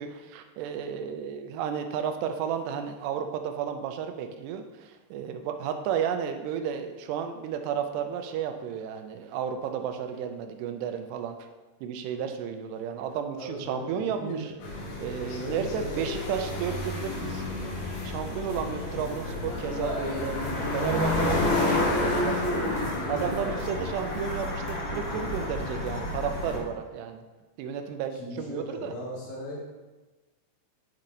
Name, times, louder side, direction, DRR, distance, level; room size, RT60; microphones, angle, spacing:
voice 1, 0.0-11.4 11.8-14.5 15.0-20.4 20.7-22.7 23.1-27.2 27.6-28.9, right 8 dB, 80° right, 6 dB, 2.7 m, -33 dB
voice 2, 13.4-14.6 15.3-16.1 18.1-18.3 28.1-29.7, equal, 75° left, -3 dB, 3.7 m, -38 dB
sound 1, 14.6-26.6, left 2 dB, 55° left, 2.2 m, -30 dB
10.5 x 4.3 x 3.9 m, 1.2 s
omnidirectional pair, 5.0 m